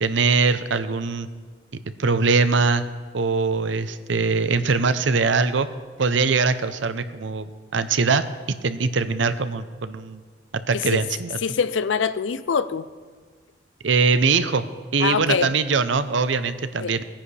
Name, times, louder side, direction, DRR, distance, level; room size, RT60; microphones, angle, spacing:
voice 1, 0.0-1.3 2.0-2.8 3.1-5.7 6.0-7.5 7.7-10.2 10.5-11.4 13.8-14.6 14.9-17.0, right 4 dB, 80° right, 0.7 m, -22 dB
voice 2, 11.4-12.9 15.0-15.5 16.8-16.9, left 6 dB, 80° left, 0.5 m, -24 dB
19.5 x 10.0 x 3.3 m
head